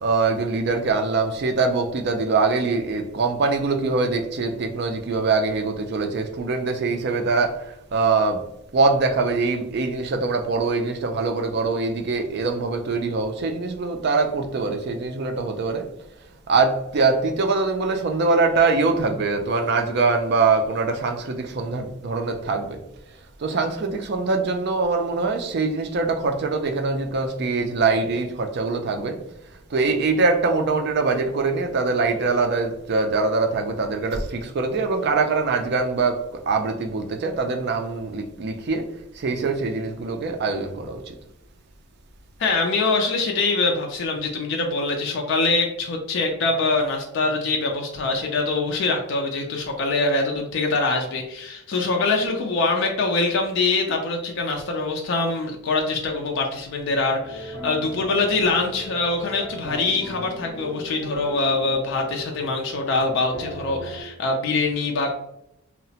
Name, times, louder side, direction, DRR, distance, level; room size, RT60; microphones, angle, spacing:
voice 1, 0.0-8.4 8.7-15.9 16.5-22.8 23.4-29.2 29.7-38.9 39.1-41.1, right 3 dB, 50° right, 0.4 m, -23 dB
voice 2, 42.4-65.1, left 3 dB, 55° left, 0.3 m, -24 dB
sound 1, 57.2-64.0, equal, 20° left, 1.0 m, -37 dB
2.8 x 2.0 x 2.7 m
head